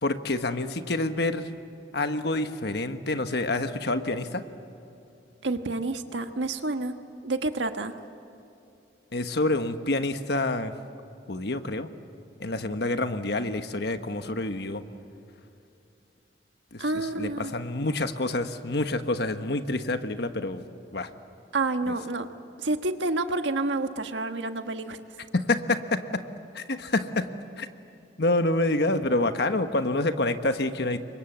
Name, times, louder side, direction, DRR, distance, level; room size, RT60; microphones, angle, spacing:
voice 1, 0.0-1.5 1.9-4.4 9.1-10.7 11.3-11.9 12.4-14.8 16.7-20.7 20.9-21.1 25.3-26.2 26.5-27.3 27.6-27.7 28.2-31.0, left 2 dB, 60° left, 8 dB, 1.3 m, -27 dB
voice 2, 5.4-6.9 7.2-7.9 16.8-17.5 21.5-22.3 22.6-25.0, right 2 dB, 85° right, 7 dB, 1.5 m, -29 dB
29.0 x 24.5 x 8.0 m, 2.7 s
head